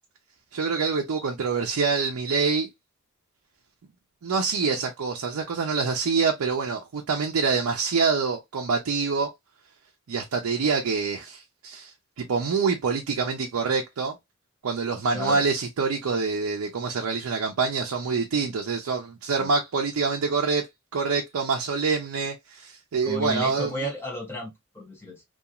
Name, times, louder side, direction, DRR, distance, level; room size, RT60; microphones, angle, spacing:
voice 1, 0.5-2.7 4.2-9.3 10.1-14.2 14.6-20.7 20.9-23.7, right 4 dB, 80° right, 0.5 m, -26 dB
voice 2, 15.1-15.5 19.4-19.5 23.0-25.2, left 1 dB, 10° left, 0.6 m, -33 dB
2.8 x 2.3 x 2.3 m
head